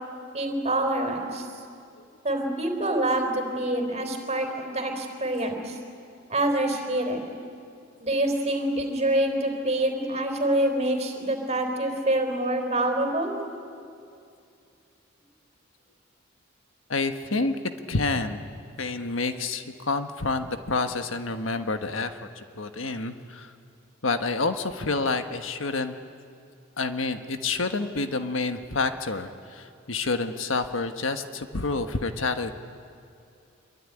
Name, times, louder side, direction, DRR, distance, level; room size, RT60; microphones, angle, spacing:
voice 1, 0.3-1.4 2.2-5.7 6.3-7.2 8.0-13.3, right 1 dB, 35° right, 4 dB, 3.9 m, -26 dB
voice 2, 16.9-17.6 17.9-18.4 18.8-23.5 24.0-25.9 26.8-32.5, left 3 dB, 80° left, 8 dB, 1.4 m, -28 dB
25.0 x 23.0 x 9.9 m, 2.5 s
head